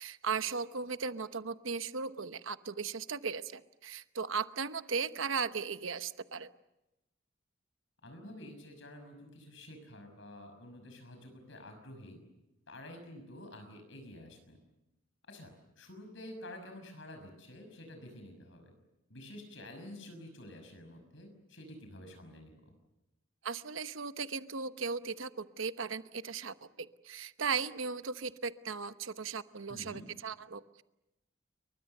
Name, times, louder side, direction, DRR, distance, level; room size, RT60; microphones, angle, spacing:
voice 1, 0.0-6.5 23.4-30.8, right 5 dB, 75° right, 11 dB, 1.0 m, -37 dB
voice 2, 8.0-12.2 12.7-14.6 15.3-18.7 19.1-22.5 29.7-30.1, left 1 dB, 70° left, 6 dB, 6.1 m, -49 dB
29.5 x 23.5 x 6.8 m, 0.96 s
head